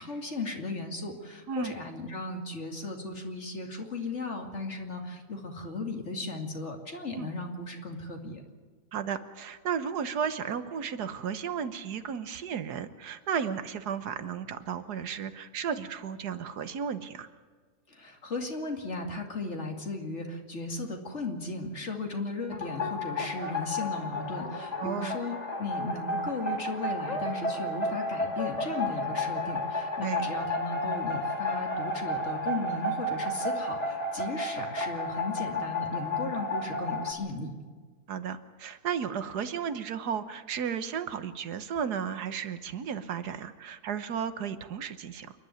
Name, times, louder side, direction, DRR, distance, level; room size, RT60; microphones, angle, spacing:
voice 1, 0.0-8.4 17.9-37.5, left 2 dB, 45° left, 3 dB, 2.7 m, -36 dB
voice 2, 8.9-17.3 24.8-25.2 30.0-30.3 38.1-45.3, right 7 dB, 85° right, 11 dB, 1.6 m, -34 dB
sound 1, 22.5-37.1, left 1 dB, 25° left, 2.3 m, -32 dB
28.0 x 11.0 x 9.2 m, 1.5 s
omnidirectional pair, 1.7 m